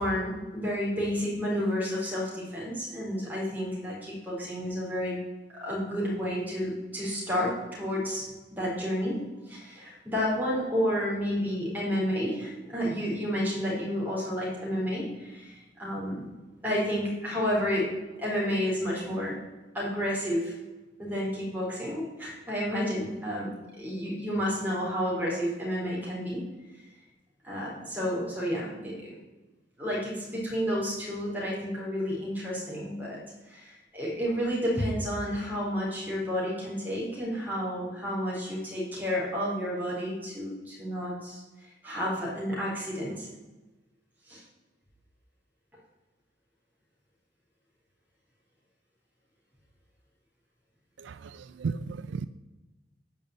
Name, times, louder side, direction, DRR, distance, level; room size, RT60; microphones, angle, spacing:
voice 1, 0.0-5.2 5.5-8.3 8.5-9.2 9.5-16.3 16.6-17.9 18.2-19.4 19.7-20.5 21.0-23.5 23.8-26.4 27.4-29.2 29.8-33.2 33.5-43.3 44.3-44.4, equal, 10° right, -5 dB, 4.0 m, -31 dB
voice 2, 51.0-52.3, right 4 dB, 80° right, 14 dB, 0.4 m, -35 dB
10.0 x 5.5 x 8.0 m, 1.1 s
head